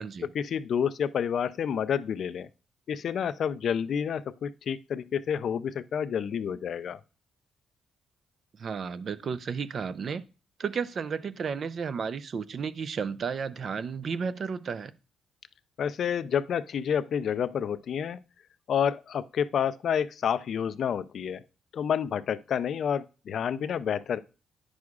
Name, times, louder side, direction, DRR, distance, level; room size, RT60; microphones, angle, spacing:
voice 1, 0.3-2.5 2.9-7.0 15.8-18.2 18.7-21.4 21.7-24.2, left 8 dB, 60° left, 0.4 m, -29 dB
voice 2, 8.6-10.2 10.6-14.9, right 6 dB, 50° right, 0.4 m, -33 dB
9.4 x 6.2 x 2.4 m
cardioid pair, 95°, 0 cm